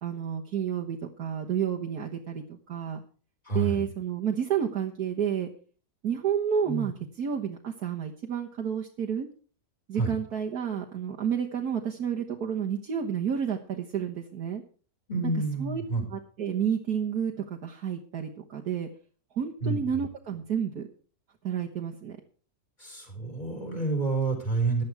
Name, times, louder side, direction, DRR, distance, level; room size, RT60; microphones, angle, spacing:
voice 1, 0.0-3.0 3.5-5.5 6.0-9.3 9.9-14.6 15.6-15.8 16.1-18.9 19.4-20.9 21.4-22.2, right 8 dB, 70° right, 0 dB, 1.8 m, -30 dB
voice 2, 3.4-3.9 6.7-6.9 9.9-10.1 15.1-16.0 19.6-19.8 22.8-24.8, right 3 dB, 25° left, 2 dB, 4.8 m, -29 dB
14.5 x 10.5 x 4.8 m, 0.40 s
omnidirectional pair, 1.7 m